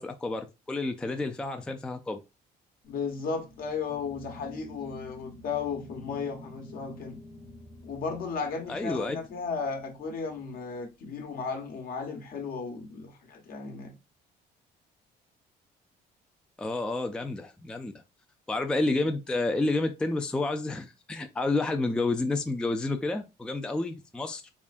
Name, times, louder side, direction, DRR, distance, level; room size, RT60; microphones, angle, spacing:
voice 1, 0.0-2.2 8.7-9.2 16.6-17.9 18.5-24.5, left 2 dB, 5° left, 0.3 m, -30 dB
sound 1, 2.8-10.6, left 2 dB, 25° left, 0.9 m, -49 dB
voice 2, 2.9-7.2 7.8-13.9, left 5 dB, 60° left, 1.1 m, -35 dB
3.6 x 3.2 x 2.4 m
cardioid pair, 110°, 17 cm